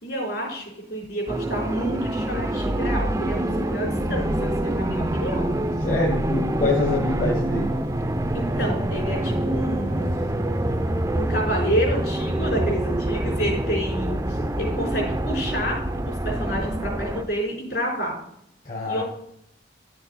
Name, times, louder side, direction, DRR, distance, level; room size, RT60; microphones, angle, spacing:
voice 1, 0.0-5.5 8.3-10.1 11.1-18.2 18.8-19.0, equal, 65° left, -2 dB, 4.1 m, -29 dB
sound 1, 1.3-17.2, right 1 dB, 15° right, 0.5 m, -26 dB
voice 2, 5.8-7.8 18.6-19.0, left 2 dB, 45° left, 0 dB, 1.2 m, -25 dB
11.0 x 6.6 x 4.1 m, 0.75 s
head